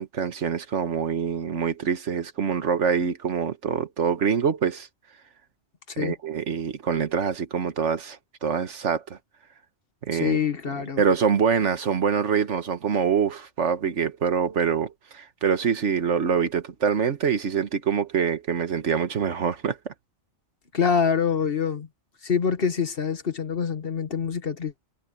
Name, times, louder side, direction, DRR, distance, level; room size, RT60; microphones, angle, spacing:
voice 1, 0.0-4.9 6.0-9.2 10.0-10.4 10.8-19.9, right 6 dB, 90° right, 1.6 m, -25 dB
voice 2, 10.1-11.0 20.7-21.9 22.2-24.7, left 6 dB, 55° left, 1.6 m, -25 dB
omnidirectional pair, 1.2 m